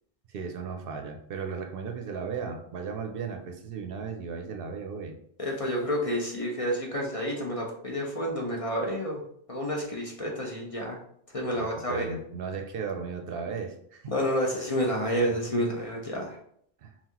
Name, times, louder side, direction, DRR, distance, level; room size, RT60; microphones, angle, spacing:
voice 1, 0.3-5.1 11.6-14.1 16.8-16.9, right 5 dB, 65° right, 5 dB, 0.7 m, -36 dB
voice 2, 5.4-9.2 9.5-11.0 11.3-12.2 14.1-16.4, equal, 40° left, -1 dB, 0.7 m, -29 dB
5.6 x 2.4 x 2.9 m, 0.69 s
omnidirectional pair, 1.1 m